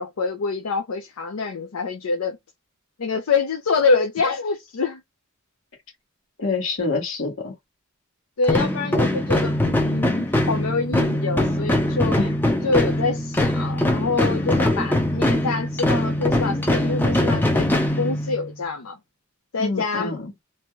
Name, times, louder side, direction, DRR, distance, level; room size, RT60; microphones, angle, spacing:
voice 1, 0.0-2.4 3.0-5.0 8.4-12.2 12.6-19.0 19.5-20.2, left 4 dB, 80° left, 0.5 m, -25 dB
voice 2, 6.4-7.5 12.2-12.4 19.6-20.3, left 3 dB, 60° left, 1.3 m, -26 dB
sound 1, 8.4-18.6, left 1 dB, 10° left, 0.5 m, -22 dB
2.7 x 2.3 x 3.0 m
head